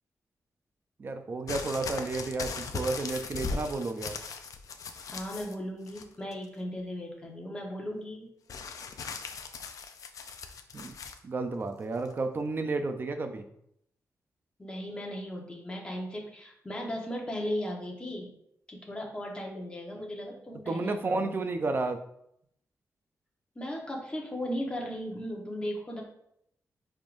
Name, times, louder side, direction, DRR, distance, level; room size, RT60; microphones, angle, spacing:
voice 1, 1.0-4.1 10.7-10.9 11.2-13.4 20.7-22.0, right 3 dB, 35° right, 6 dB, 0.6 m, -32 dB
sound 1, 1.5-5.5 5.9-6.4 8.5-11.2 12.0-12.1, left 5 dB, 70° left, 0.6 m, -38 dB
voice 2, 5.1-8.3 14.6-18.3 18.7-21.3 23.5-26.0, equal, 15° left, -1 dB, 1.2 m, -36 dB
9.7 x 3.7 x 2.6 m, 0.73 s
wide cardioid pair, 160°, 6 cm